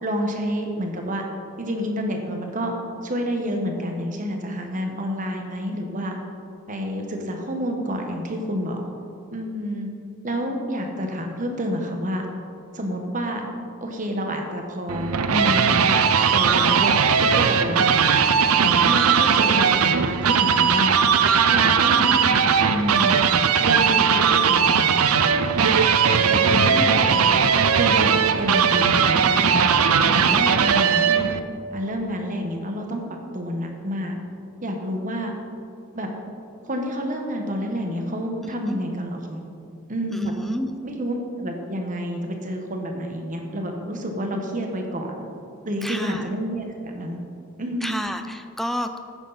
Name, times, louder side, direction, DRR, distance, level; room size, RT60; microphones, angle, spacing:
voice 1, 0.0-1.3 1.6-2.7 3.0-6.2 6.7-8.8 9.3-9.9 10.2-12.3 12.7-13.4 13.8-16.0 16.3-18.0 18.3-21.0 21.5-22.3 22.5-23.3 23.6-25.0 25.5-25.7 26.3-27.4 27.7-29.7 30.1-31.3 31.7-33.0 33.3-34.2 34.6-35.3 35.9-36.1 36.6-39.4 39.9-40.3 40.8-45.3 45.6-47.2 47.6-48.0, equal, 35° right, 3 dB, 1.3 m, -28 dB
sound 1, 14.9-31.4, right 6 dB, 85° right, 0.6 m, -19 dB
voice 2, 38.4-38.8 40.1-40.8 45.8-46.2 47.8-49.0, equal, ahead, 7 dB, 0.5 m, -30 dB
13.5 x 9.8 x 4.2 m, 2.5 s
head